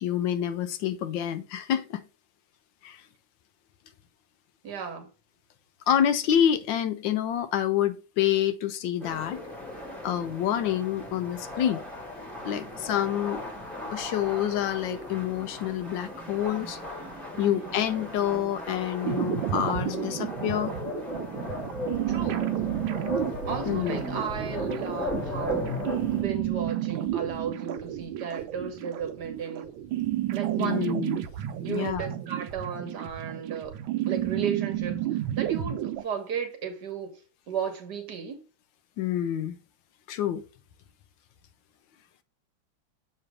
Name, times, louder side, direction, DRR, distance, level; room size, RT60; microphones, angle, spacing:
voice 1, 0.0-2.0 2.8-3.0 5.9-9.4 10.0-11.8 12.4-13.4 13.9-16.8 17.4-20.7 23.7-24.0 30.6-31.2 31.7-32.1 39.0-39.6 40.1-40.4, left 10 dB, 75° left, 1.2 m, -27 dB
voice 2, 4.6-5.1 17.3-17.7 22.1-22.4 23.5-25.8 26.1-29.7 30.3-30.9 31.6-33.7 34.1-37.2 37.5-38.4, right 7 dB, 60° right, 1.5 m, -34 dB
sound 1, 9.0-26.2, left 2 dB, ahead, 1.4 m, -37 dB
sound 2, 19.0-36.0, right 12 dB, 80° right, 1.4 m, -31 dB
6.8 x 3.1 x 4.8 m
omnidirectional pair, 2.2 m